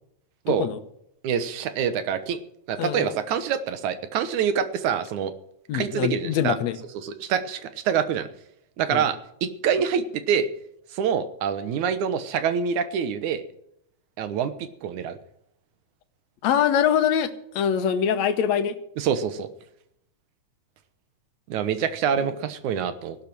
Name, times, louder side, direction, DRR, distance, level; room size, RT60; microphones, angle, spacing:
voice 1, 0.5-0.8 2.8-3.2 5.7-6.8 8.9-9.1 16.4-18.8 22.2-22.3, left 8 dB, 70° left, 10 dB, 2.3 m, -24 dB
voice 2, 1.2-2.4 2.7-5.3 5.7-6.6 7.0-8.3 8.8-10.5 10.9-13.4 14.2-14.5 14.8-15.2 19.0-19.5 21.5-23.2, right 7 dB, 80° right, 12 dB, 2.6 m, -26 dB
16.0 x 12.0 x 6.1 m, 0.74 s
omnidirectional pair, 3.4 m